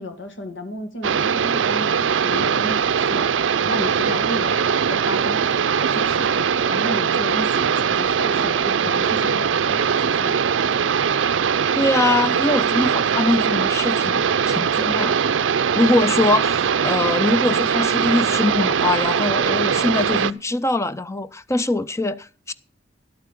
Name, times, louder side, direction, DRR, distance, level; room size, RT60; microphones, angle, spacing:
voice 1, 0.0-3.3 3.7-5.4 5.8-10.4, equal, 85° left, 2.1 m, -33 dB
sound 1, 1.0-20.3, right 7 dB, 90° right, 0.5 m, -21 dB
voice 2, 11.7-15.2 15.7-22.5, left 2 dB, 15° left, 0.5 m, -22 dB
12.0 x 8.6 x 5.6 m
head